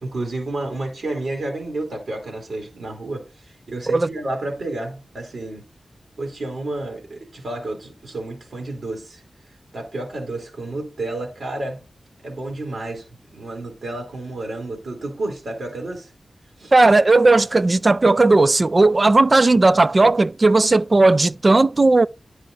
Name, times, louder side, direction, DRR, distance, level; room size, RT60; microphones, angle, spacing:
voice 1, 0.0-3.3 3.7-5.6 6.2-9.2 9.7-11.8 12.2-13.0 13.3-16.1 16.6-16.7, right 2 dB, 80° right, 2.9 m, -30 dB
voice 2, 16.7-22.1, right 2 dB, 40° right, 0.4 m, -15 dB
10.0 x 5.6 x 3.9 m
wide cardioid pair, 75°, 0 cm